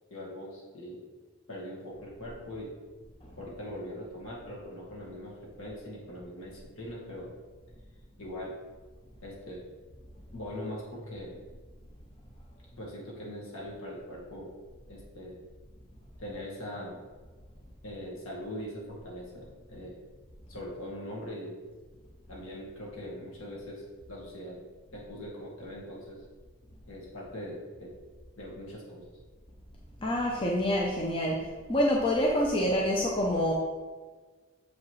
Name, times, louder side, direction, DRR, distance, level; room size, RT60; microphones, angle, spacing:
voice 1, 0.1-1.0 1.5-2.7 3.4-7.3 8.2-8.6 9.2-9.7 10.3-11.4 12.7-14.5 14.9-15.4 16.2-17.0 17.8-20.0 20.5-21.6 22.3-24.6 24.9-26.2 26.8-28.0 28.4-29.1, equal, 60° left, -4 dB, 1.8 m, -41 dB
voice 2, 30.0-31.4 31.7-33.5, left 1 dB, 25° left, -2 dB, 0.6 m, -26 dB
7.0 x 5.1 x 3.2 m, 1.4 s
head